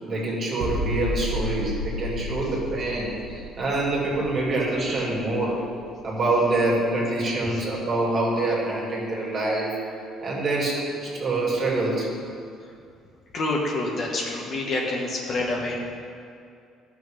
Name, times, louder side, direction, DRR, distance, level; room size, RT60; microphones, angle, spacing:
voice 1, 0.0-5.6 6.0-9.8 10.2-12.1, right 2 dB, 35° right, -4 dB, 2.4 m, -25 dB
sound 1, 0.6-6.3 6.6-6.8, equal, 65° right, 1.2 m, -33 dB
voice 2, 13.3-15.8, left 2 dB, 40° left, -1 dB, 1.3 m, -27 dB
14.5 x 6.3 x 3.5 m, 2.4 s
cardioid pair, 150°, 0 cm